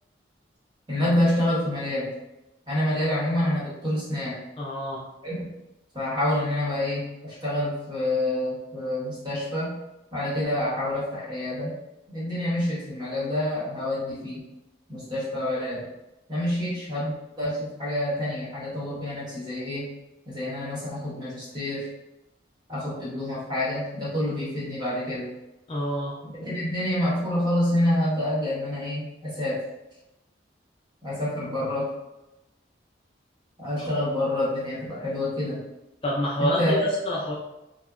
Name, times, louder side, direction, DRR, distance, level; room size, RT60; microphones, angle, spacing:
voice 1, 0.9-2.1 2.7-4.4 5.2-5.5 5.9-9.8 10.1-11.7 12.1-14.4 14.9-15.9 16.3-19.9 20.3-21.9 22.7-25.3 26.2-29.6 31.0-31.9 33.6-35.6 36.4-36.9, left 1 dB, 25° right, -8 dB, 1.0 m, -27 dB
voice 2, 4.6-5.0 25.7-26.2 36.0-37.3, equal, 30° left, -5 dB, 0.3 m, -28 dB
2.8 x 2.1 x 2.3 m, 0.95 s
head